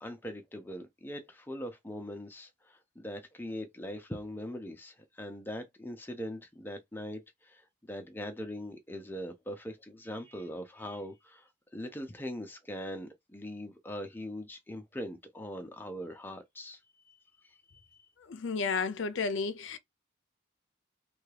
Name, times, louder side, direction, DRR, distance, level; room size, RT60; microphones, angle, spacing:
voice 1, 0.0-16.8 17.1-17.2 17.4-17.8, equal, 10° left, 0.5 m, -41 dB
voice 2, 18.3-19.8, left 4 dB, 70° left, 0.5 m, -32 dB
3.4 x 2.3 x 3.3 m
head